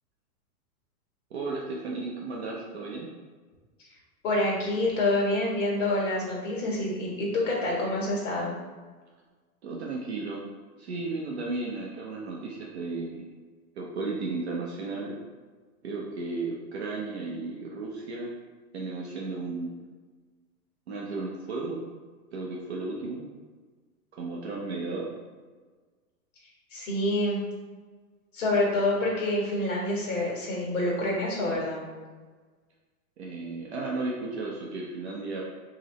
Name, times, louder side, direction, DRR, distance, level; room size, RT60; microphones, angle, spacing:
voice 1, 1.3-3.1 9.6-10.4 10.8-13.3 13.8-15.1 15.8-18.3 18.7-19.8 20.9-21.8 22.3-23.3 24.2-25.1 33.2-35.4, right 3 dB, 50° right, -2 dB, 0.5 m, -34 dB
voice 2, 4.2-8.5 26.7-27.4 28.3-31.8, left 1 dB, 55° left, -3 dB, 1.4 m, -27 dB
3.9 x 2.8 x 3.1 m, 1.4 s
supercardioid pair, 170°, 45 cm